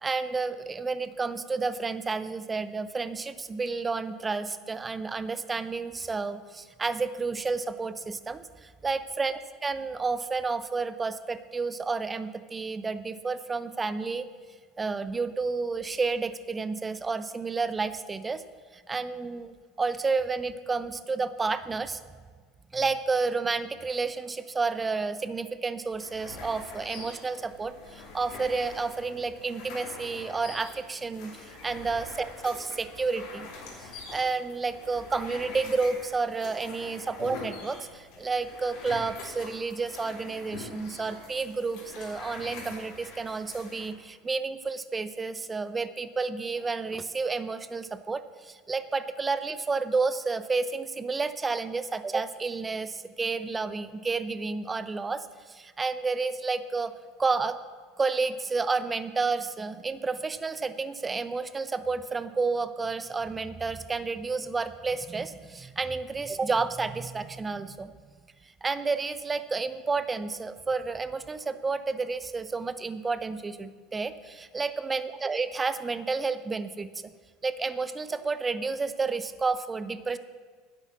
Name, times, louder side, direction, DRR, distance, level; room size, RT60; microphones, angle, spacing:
voice 1, 0.0-14.2 14.8-18.4 18.7-22.0 22.7-33.5 33.8-56.9 57.2-57.6 58.0-67.9 68.4-77.1 77.4-80.2, right 4 dB, 20° right, 13 dB, 0.7 m, -31 dB
sound 1, 26.0-43.9, left 3 dB, 60° left, 3.0 m, -44 dB
9.9 x 8.4 x 7.0 m, 1.5 s
hypercardioid pair, 75°, 0 cm